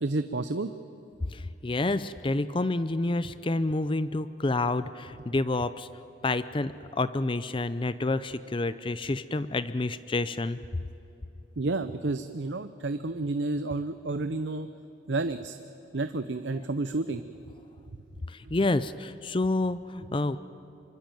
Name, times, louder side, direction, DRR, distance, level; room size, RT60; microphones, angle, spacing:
voice 1, 0.0-0.7 11.6-14.7 15.1-15.6 15.9-17.2, right 2 dB, 65° right, 10 dB, 0.7 m, -30 dB
voice 2, 1.3-5.9 6.2-10.6 18.3-20.4, left 2 dB, 25° left, 14 dB, 0.5 m, -29 dB
25.5 x 23.5 x 9.1 m, 3.0 s
head